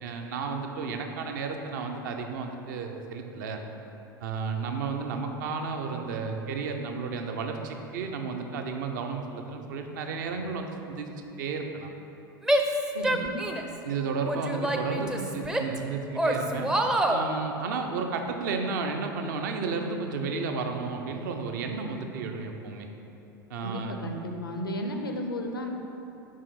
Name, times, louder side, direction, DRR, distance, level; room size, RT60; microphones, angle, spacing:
voice 1, 0.0-3.6 4.2-11.1 11.4-11.9 13.8-16.7 17.1-22.9 23.5-24.0, right 4 dB, 60° right, 4 dB, 0.7 m, -32 dB
Female speech woman speaking / Yell, 12.4-13.8 14.2-15.8 16.2-17.2, right 1 dB, 5° right, 0.5 m, -26 dB
voice 2, 12.9-13.4 23.6-25.7, equal, 80° left, 3 dB, 0.7 m, -33 dB
5.6 x 5.2 x 4.9 m, 3.0 s
figure-of-eight pair, 80°, 12 cm